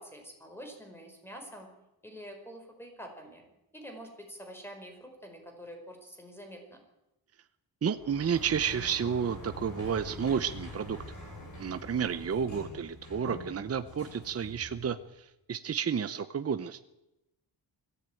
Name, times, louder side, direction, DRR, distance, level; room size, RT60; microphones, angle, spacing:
voice 1, 0.0-1.7 2.0-3.4 3.7-6.8, equal, 5° left, 3 dB, 5.2 m, -46 dB
voice 2, 7.8-11.2 11.6-16.9, right 7 dB, 35° right, 11 dB, 0.8 m, -31 dB
Sliding door, 7.9-15.1, left 1 dB, 45° left, 7.2 m, -45 dB
21.0 x 15.5 x 9.2 m, 0.93 s
wide cardioid pair, 155°, 41 cm